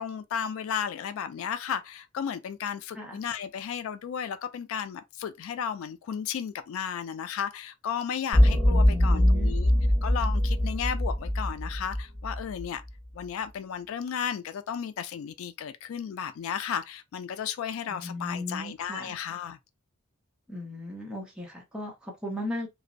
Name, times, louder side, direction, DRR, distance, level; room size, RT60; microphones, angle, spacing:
voice 1, 0.0-9.7 10.0-12.8 13.1-19.6, left 8 dB, 75° left, 0.3 m, -34 dB
sound 1, 8.3-12.6, left 1 dB, 30° right, 1.2 m, -23 dB
voice 2, 8.7-9.5 17.9-19.1 20.5-22.7, left 1 dB, 5° right, 0.7 m, -36 dB
2.5 x 2.0 x 2.5 m
head